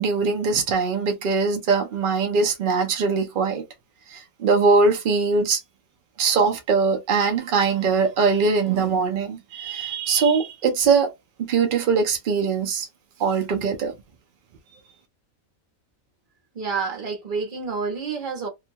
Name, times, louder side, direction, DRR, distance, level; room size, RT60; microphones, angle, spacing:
voice 1, 0.0-3.6 4.1-5.6 6.2-11.1 11.4-12.9 13.2-13.9, right 4 dB, 70° right, 0.5 m, -21 dB
voice 2, 16.5-18.5, right 5 dB, 40° right, 1.0 m, -28 dB
2.7 x 2.2 x 2.7 m
omnidirectional pair, 1.5 m